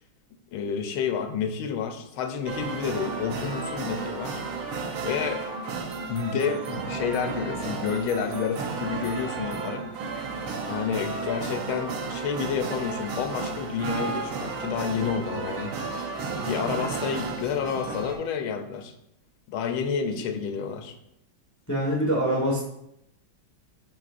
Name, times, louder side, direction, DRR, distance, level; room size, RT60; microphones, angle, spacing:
voice 1, 0.5-4.4 5.0-5.4 6.1-9.9 10.7-15.8 16.5-18.9 19.5-20.9, left 6 dB, 80° left, 6 dB, 1.5 m, -29 dB
sound 1, 2.4-18.1, right 4 dB, 80° right, 1.7 m, -33 dB
voice 2, 21.7-22.6, equal, 10° left, -4 dB, 0.9 m, -24 dB
10.5 x 4.7 x 2.5 m, 0.81 s
omnidirectional pair, 2.3 m